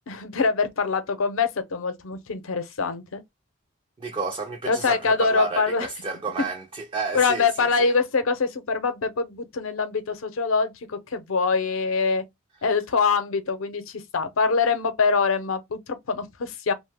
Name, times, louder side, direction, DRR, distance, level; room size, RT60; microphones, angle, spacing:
voice 1, 0.1-3.2 4.7-5.9 7.1-12.2 12.6-16.7, left 4 dB, 90° left, 0.6 m, -24 dB
voice 2, 4.0-7.9, right 4 dB, 25° right, 0.4 m, -31 dB
2.8 x 2.1 x 3.2 m
head